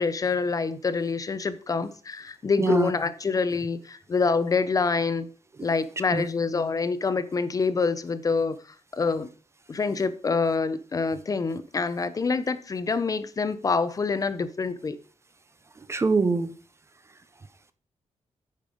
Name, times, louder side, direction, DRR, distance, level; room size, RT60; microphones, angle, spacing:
voice 1, 0.0-5.3 5.6-8.6 8.9-9.3 9.7-15.0, left 4 dB, 30° left, 0.5 m, -26 dB
voice 2, 2.6-2.9 5.6-5.7 6.1-6.3 15.9-16.5, right 4 dB, 20° right, 0.5 m, -23 dB
9.1 x 5.3 x 4.9 m
wide cardioid pair, 180°, 12 cm